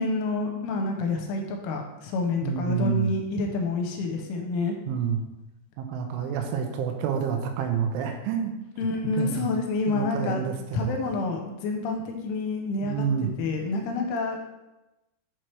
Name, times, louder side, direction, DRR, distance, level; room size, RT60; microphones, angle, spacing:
voice 1, 0.0-4.8 8.8-10.5 10.7-13.1 13.4-14.4, left 3 dB, 85° left, 2 dB, 3.1 m, -28 dB
voice 2, 2.4-3.2 4.9-5.2 5.8-8.5 9.2-9.5 9.9-10.9 12.8-13.3, right 7 dB, 85° right, 4 dB, 3.0 m, -28 dB
7.5 x 3.2 x 4.5 m, 0.97 s
omnidirectional pair, 5.6 m